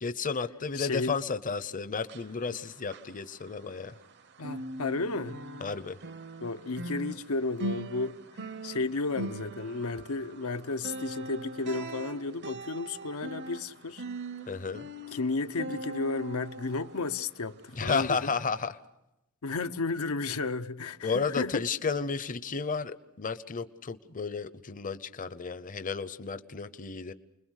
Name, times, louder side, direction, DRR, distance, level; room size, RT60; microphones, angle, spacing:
voice 1, 0.0-3.9 5.6-6.0 14.5-14.9 17.7-18.8 21.0-27.1, left 5 dB, 40° left, 0.8 m, -32 dB
voice 2, 0.7-1.2 4.4-5.4 6.4-14.0 15.1-18.4 19.4-21.6, left 3 dB, 80° left, 0.9 m, -33 dB
sound 1, 2.0-4.1 4.4-17.5 17.9-18.1 18.6-18.7, right 2 dB, 55° right, 0.9 m, -41 dB
30.0 x 21.5 x 6.5 m
head